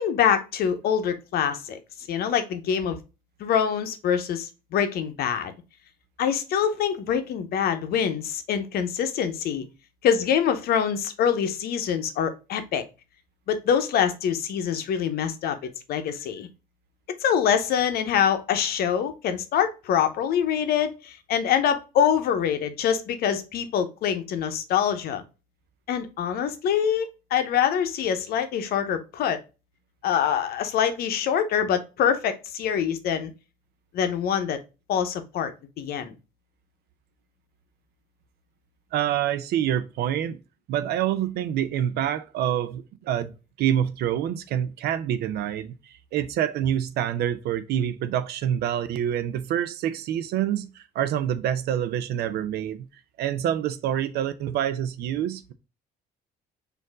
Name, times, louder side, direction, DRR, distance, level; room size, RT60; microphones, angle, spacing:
voice 1, 0.0-1.8 2.1-3.0 3.4-5.5 6.2-9.7 10.0-12.8 13.5-16.5 17.2-25.2 25.9-29.4 30.0-33.3 33.9-34.6 34.9-35.5 35.8-36.1, left 8 dB, 65° left, 0.7 m, -25 dB
voice 2, 38.9-40.4 40.7-43.3 43.6-52.9 53.2-55.5, right 10 dB, 70° right, 0.5 m, -27 dB
4.4 x 2.6 x 4.6 m
cardioid pair, 110°, 17 cm